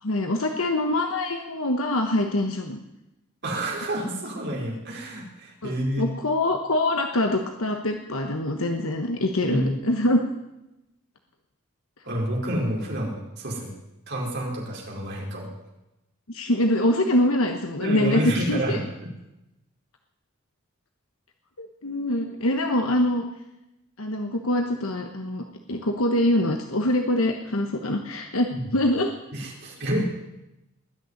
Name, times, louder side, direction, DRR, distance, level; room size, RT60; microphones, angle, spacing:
voice 1, 0.0-2.8 5.6-10.2 16.3-18.8 21.6-23.2 24.0-29.1, left 1 dB, 70° left, 4 dB, 1.3 m, -24 dB
voice 2, 3.4-6.1 9.4-9.7 12.1-13.7 14.1-15.5 17.8-19.1 28.5-28.6 29.3-30.0, right 1 dB, 50° right, -2 dB, 4.5 m, -29 dB
20.5 x 6.8 x 9.6 m, 0.93 s
head